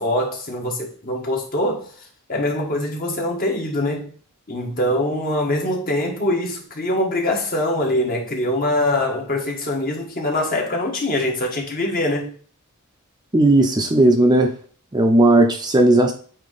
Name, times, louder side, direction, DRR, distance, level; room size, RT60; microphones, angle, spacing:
voice 1, 0.0-1.9 2.3-4.1 4.5-12.3, left 1 dB, 40° left, 1.7 m, -23 dB
voice 2, 13.3-14.5 14.9-16.1, right 1 dB, 20° right, 0.7 m, -15 dB
8.4 x 2.9 x 4.1 m
head